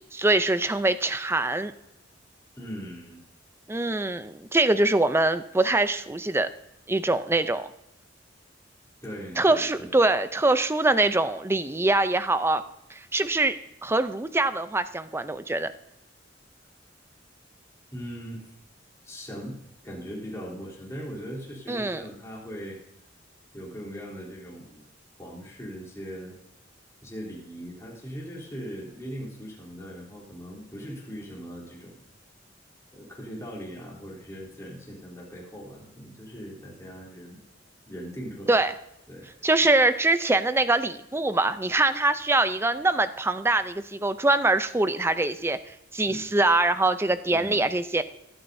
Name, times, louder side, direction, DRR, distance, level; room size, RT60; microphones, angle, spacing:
voice 1, 0.1-1.7 3.7-6.5 6.9-7.7 9.4-12.6 12.9-13.6 13.8-15.7 21.7-22.0 38.5-38.7 39.4-45.6 45.9-48.0, right 2 dB, 15° right, 12 dB, 0.5 m, -23 dB
voice 2, 2.5-3.2 9.0-9.9 17.9-18.4 19.0-19.6 19.8-22.8 23.5-24.8 25.2-26.4 27.0-32.1 32.9-37.4 37.9-38.5 39.1-39.7 46.1-46.4 47.3-47.6, equal, 15° left, -4 dB, 3.4 m, -40 dB
24.0 x 8.9 x 2.7 m, 0.85 s
head